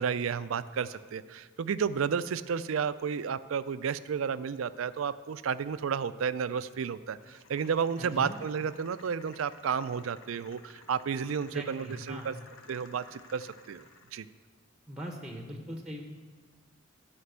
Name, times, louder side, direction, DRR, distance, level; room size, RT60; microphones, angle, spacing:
voice 1, 0.0-12.3 12.7-14.3, right 6 dB, 85° right, 14 dB, 0.4 m, -32 dB
sound 1, 7.2-14.2, left 3 dB, 80° left, 0.9 m, -55 dB
voice 2, 8.0-8.4 11.4-12.3 14.9-16.0, equal, 5° right, 2 dB, 0.8 m, -40 dB
11.5 x 5.2 x 8.0 m, 1.4 s
head